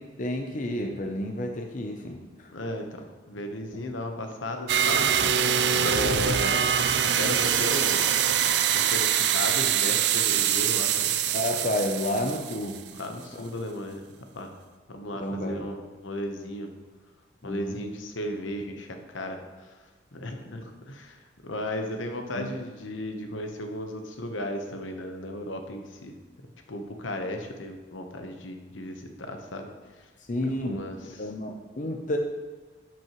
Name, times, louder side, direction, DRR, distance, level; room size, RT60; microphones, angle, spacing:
voice 1, 0.0-2.5 5.7-5.9 11.3-12.9 13.3-13.4 15.1-15.6 17.4-17.8 22.3-22.5 30.3-30.9 31.2-32.2, left 1 dB, 40° left, 3 dB, 0.6 m, -31 dB
voice 2, 2.5-5.1 5.4-6.6 7.1-8.1 8.7-11.2 11.6-11.7 12.9-14.5 14.9-16.7 17.4-19.4 20.1-26.1 26.7-29.7 30.0-30.1 30.6-31.2, left 1 dB, 80° left, 5 dB, 1.0 m, -35 dB
sound 1, 4.7-13.0, right 8 dB, 60° right, 0.4 m, -24 dB
12.0 x 6.1 x 3.1 m, 1.4 s
head